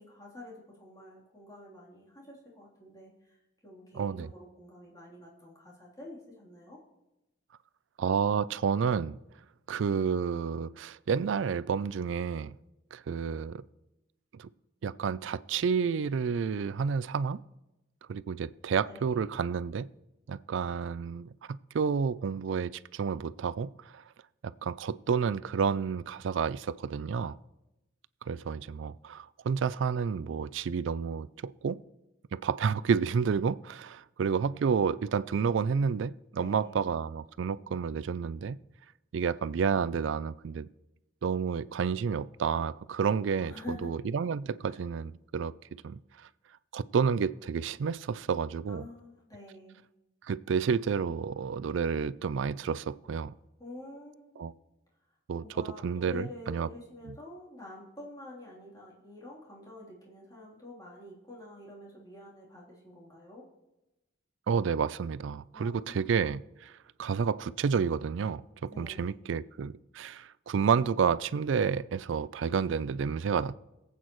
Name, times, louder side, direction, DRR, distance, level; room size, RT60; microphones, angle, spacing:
voice 1, 0.0-3.4 3.6-6.8 18.9-19.2 36.3-36.7 43.4-43.9 44.7-44.8 48.7-49.8 53.6-54.5 55.4-63.5 65.5-66.2 68.7-69.2, left 2 dB, 20° left, -5 dB, 3.3 m, -48 dB
voice 2, 3.9-4.3 8.0-9.2 9.7-12.5 12.9-13.6 14.3-14.5 14.8-17.4 18.1-19.9 20.3-24.0 24.4-27.4 28.2-31.8 32.3-38.6 39.1-40.7 41.2-46.3 46.7-48.8 50.2-53.3 54.4-54.5 55.3-56.7 57.1-57.2 64.5-66.7 67.0-73.6, right 6 dB, 70° right, 18 dB, 0.4 m, -30 dB
22.0 x 8.4 x 3.1 m, 0.95 s
head